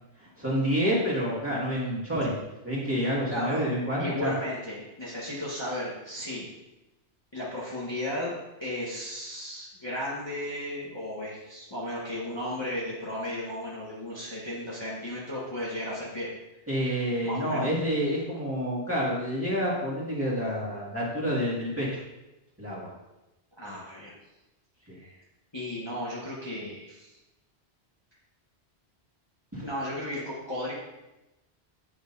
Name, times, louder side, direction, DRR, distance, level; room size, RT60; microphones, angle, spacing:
voice 1, 0.2-2.4 2.6-4.3 16.7-22.0 22.6-22.9 24.9-25.0 29.5-29.6, equal, 10° right, -7 dB, 2.0 m, -28 dB
voice 2, 3.3-3.6 4.0-6.5 7.3-8.3 8.6-16.3 17.2-17.7 23.6-24.1 24.9-25.1 25.5-27.1 29.6-30.7, left 1 dB, 25° left, -7 dB, 1.4 m, -34 dB
8.5 x 6.6 x 2.7 m, 0.98 s
omnidirectional pair, 1.1 m